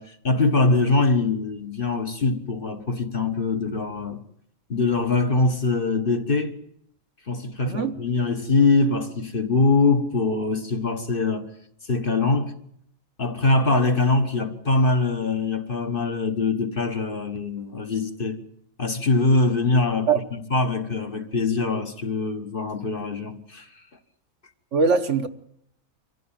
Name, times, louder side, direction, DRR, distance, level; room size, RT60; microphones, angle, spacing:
voice 1, 0.0-4.2 4.7-6.5 7.3-11.5 11.9-12.5 13.2-18.4 18.8-23.7, left 3 dB, 40° left, 1.7 m, -23 dB
voice 2, 7.6-8.0 20.1-20.2 24.7-25.3, right 5 dB, 60° right, 1.4 m, -21 dB
24.5 x 15.5 x 9.0 m
omnidirectional pair, 1.5 m